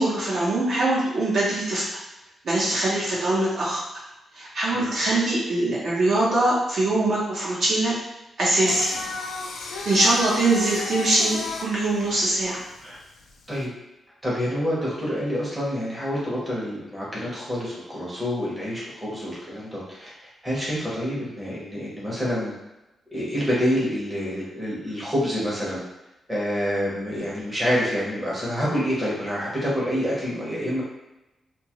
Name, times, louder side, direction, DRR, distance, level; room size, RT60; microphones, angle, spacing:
voice 1, 0.0-2.0 2.4-3.8 4.3-7.9 8.4-8.9 9.8-12.6, right 2 dB, 45° right, -6 dB, 0.7 m, -22 dB
Singing, 8.7-13.6, left 4 dB, 90° left, 0.4 m, -33 dB
voice 2, 14.2-20.1 20.4-22.5 23.1-25.8 26.3-30.8, equal, 10° right, -7 dB, 0.8 m, -27 dB
2.7 x 2.2 x 2.9 m, 0.97 s
wide cardioid pair, 180°, 0 cm